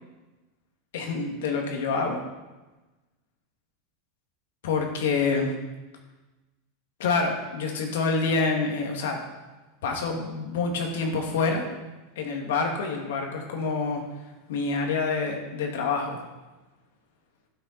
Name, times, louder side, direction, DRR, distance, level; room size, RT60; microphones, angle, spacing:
voice 1, 0.9-2.2 4.6-5.5 7.0-9.2 9.8-11.6 12.2-14.0 14.5-16.2, left 4 dB, 85° left, 1 dB, 2.6 m, -27 dB
12.5 x 9.0 x 4.5 m, 1.1 s
supercardioid pair, 145°, 0 cm